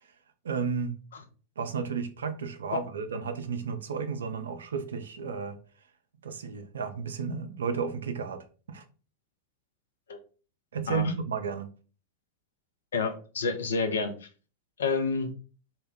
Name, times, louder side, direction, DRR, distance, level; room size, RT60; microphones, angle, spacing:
voice 1, 0.4-1.0 1.6-5.6 6.2-8.8 10.7-11.7, right 5 dB, 65° right, 0.4 m, -33 dB
voice 2, 12.9-14.3 14.8-15.3, left 4 dB, 65° left, 0.4 m, -29 dB
2.1 x 2.1 x 3.4 m
figure-of-eight pair, 90°, 0 cm